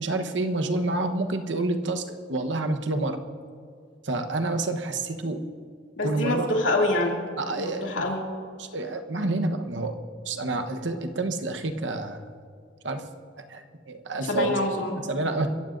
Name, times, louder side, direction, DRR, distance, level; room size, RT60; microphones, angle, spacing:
voice 1, 0.0-3.2 4.0-5.4 6.0-6.5 7.4-8.0 8.6-10.0 10.2-12.2 12.8-13.0 13.5-14.5 14.9-15.5, right 2 dB, 75° right, 6 dB, 1.1 m, -28 dB
voice 2, 6.0-7.2 7.5-8.2 14.3-15.0, left 2 dB, 80° left, -1 dB, 2.6 m, -25 dB
27.5 x 15.0 x 2.6 m, 2.1 s
head